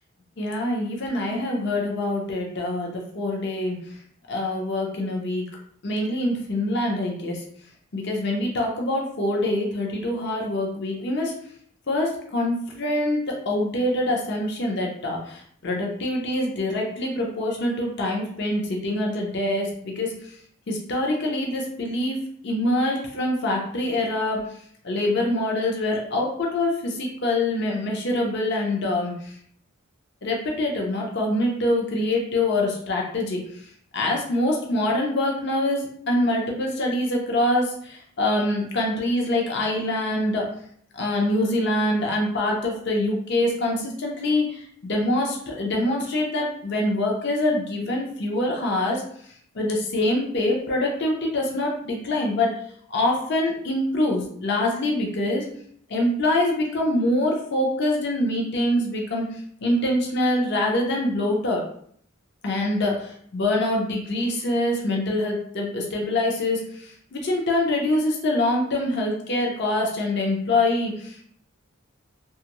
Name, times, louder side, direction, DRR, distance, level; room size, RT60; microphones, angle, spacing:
voice 1, 0.4-3.8 4.3-5.5 5.8-7.4 7.9-11.3 11.9-20.3 20.7-22.2 22.4-24.4 24.8-29.3 30.2-33.4 33.9-40.5 40.9-49.0 49.5-52.6 52.9-55.5 55.9-61.6 62.4-71.2, left 1 dB, 55° left, -1 dB, 0.6 m, -25 dB
2.9 x 2.4 x 2.9 m, 0.63 s
head